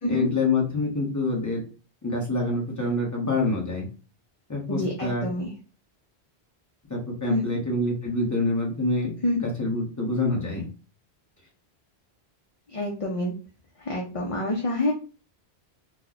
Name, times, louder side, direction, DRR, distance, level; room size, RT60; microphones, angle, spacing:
voice 1, 0.1-1.6 2.0-3.9 4.5-5.3 6.9-9.1 9.4-10.7, left 2 dB, 15° left, -2 dB, 1.0 m, -26 dB
voice 2, 4.7-5.5 7.3-7.4 9.2-9.4 12.7-13.3 13.8-14.9, left 1 dB, 40° left, -1 dB, 0.5 m, -27 dB
3.0 x 2.2 x 3.9 m, 0.35 s
omnidirectional pair, 1.1 m